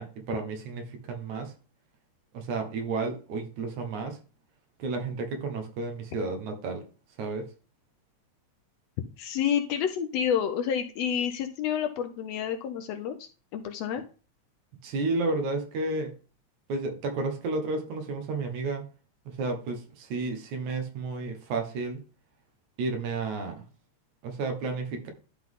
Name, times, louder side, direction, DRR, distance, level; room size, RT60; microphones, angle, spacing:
voice 1, 0.0-1.5 2.3-4.2 4.8-6.9 7.2-7.5 14.8-16.2 16.7-18.9 19.3-22.0 22.8-23.7 24.2-25.1, right 3 dB, 80° right, 2.7 m, -32 dB
voice 2, 9.2-14.0, left 8 dB, 75° left, 1.6 m, -29 dB
11.5 x 3.9 x 3.7 m
omnidirectional pair, 3.4 m